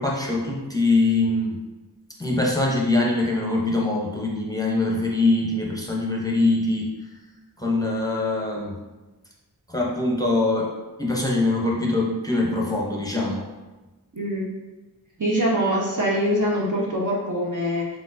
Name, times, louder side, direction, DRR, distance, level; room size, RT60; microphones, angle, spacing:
voice 1, 0.0-1.6 2.2-6.9 7.6-8.7 9.7-10.7 11.0-13.5, left 2 dB, 10° left, -3 dB, 0.7 m, -23 dB
voice 2, 14.1-14.5 15.2-17.9, equal, 45° right, -4 dB, 0.9 m, -23 dB
4.5 x 3.6 x 2.6 m, 1.1 s
wide cardioid pair, 70°, 41 cm